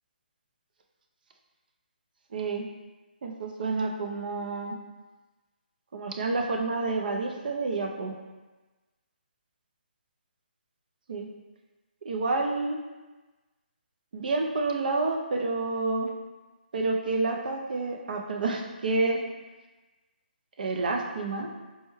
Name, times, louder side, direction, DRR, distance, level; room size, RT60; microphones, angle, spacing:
voice 1, 2.3-2.6 3.2-4.7 5.9-8.1 11.1-11.3 12.0-12.8 14.1-16.1 16.7-19.2 20.6-21.5, right 3 dB, 55° right, 2 dB, 0.5 m, -29 dB
4.6 x 2.1 x 3.1 m, 1.2 s
hypercardioid pair, 160°, 5 cm